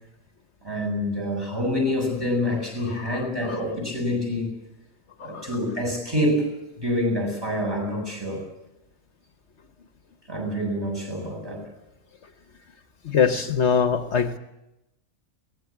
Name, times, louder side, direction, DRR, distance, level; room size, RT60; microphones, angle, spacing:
voice 1, 0.6-4.5 5.2-8.4 10.3-11.7, left 1 dB, 20° right, 2 dB, 7.5 m, -27 dB
voice 2, 13.0-14.4, left 6 dB, 65° left, 8 dB, 1.3 m, -22 dB
23.0 x 18.5 x 8.6 m, 0.92 s
omnidirectional pair, 1.3 m